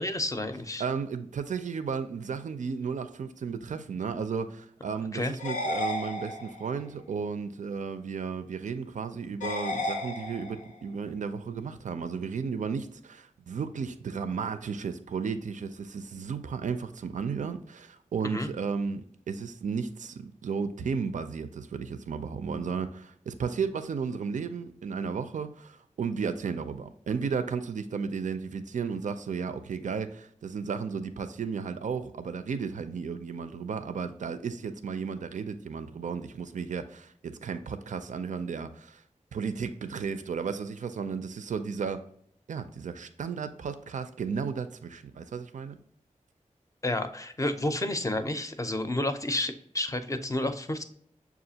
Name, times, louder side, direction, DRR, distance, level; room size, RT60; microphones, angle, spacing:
voice 1, 0.0-0.8 5.1-5.3 18.2-18.5 46.8-50.8, left 1 dB, 25° left, 0.5 m, -30 dB
voice 2, 0.8-39.0 39.3-42.1 42.5-45.8, right 5 dB, 70° right, 0.4 m, -34 dB
sound 1, 5.4-6.8 9.4-10.8, left 2 dB, 85° left, 0.6 m, -33 dB
6.5 x 2.4 x 2.7 m
wide cardioid pair, 55°, 13 cm